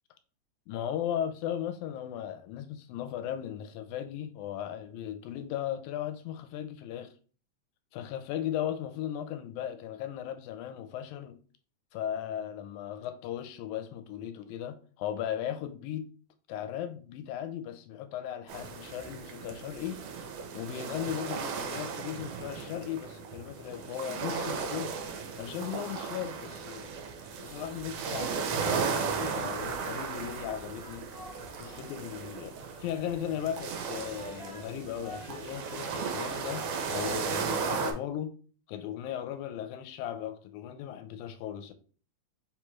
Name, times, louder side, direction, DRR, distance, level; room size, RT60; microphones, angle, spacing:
voice 1, 0.7-7.1 7.9-11.4 11.9-16.1 16.5-20.0 20.5-25.0 25.4-27.0 27.4-31.1 31.6-38.4 38.7-41.7, left 10 dB, 80° left, 1.9 m, -37 dB
sound 1, 18.5-37.9, right 5 dB, 80° right, 1.3 m, -36 dB
sound 2, 30.3-37.9, right 1 dB, 30° left, 0.3 m, -50 dB
4.4 x 3.5 x 3.0 m
omnidirectional pair, 3.4 m